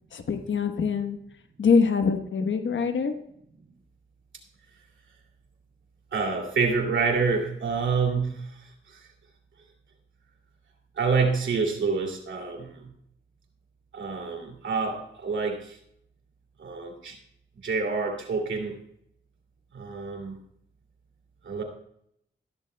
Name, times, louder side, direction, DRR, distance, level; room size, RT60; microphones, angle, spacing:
voice 1, 0.1-1.2 1.6-3.1, left 5 dB, 80° left, 8 dB, 1.1 m, -24 dB
voice 2, 6.1-8.6 8.9-9.0 11.0-12.9 13.9-15.8 16.6-17.2 17.6-18.8 19.7-20.4 21.4-21.6, right 4 dB, 80° right, 2 dB, 2.6 m, -27 dB
14.0 x 12.5 x 2.2 m, 0.71 s
cardioid pair, 50°, 19 cm